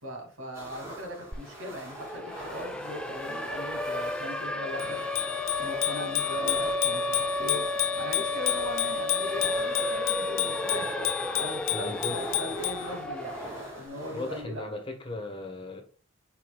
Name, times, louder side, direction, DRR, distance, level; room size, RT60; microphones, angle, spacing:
voice 1, 0.0-5.0 5.6-7.7 7.9-10.9 11.4-13.4 13.8-14.6, left 1 dB, 85° right, 2.4 m, -39 dB
sound 1, 0.5-14.4, right 1 dB, 15° right, 2.7 m, -44 dB
Siren, 1.3-1.4 1.7-13.8, left 1 dB, 5° left, 0.4 m, -33 dB
Bicycle bell, 4.8-12.9, left 15 dB, 85° left, 0.9 m, -31 dB
voice 2, 11.7-12.2 14.1-15.8, left 2 dB, 25° left, 1.3 m, -37 dB
8.4 x 4.9 x 2.3 m
head